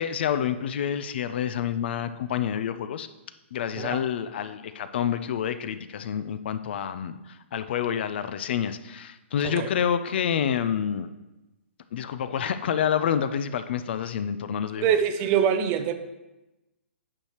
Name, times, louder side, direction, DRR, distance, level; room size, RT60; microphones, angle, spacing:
voice 1, 0.0-3.1 3.5-11.1 11.9-14.9, left 8 dB, 55° left, 12 dB, 0.4 m, -28 dB
voice 2, 14.8-15.9, right 8 dB, 25° right, 10 dB, 0.4 m, -24 dB
8.6 x 6.5 x 3.0 m, 1.0 s
hypercardioid pair, 155°, 7 cm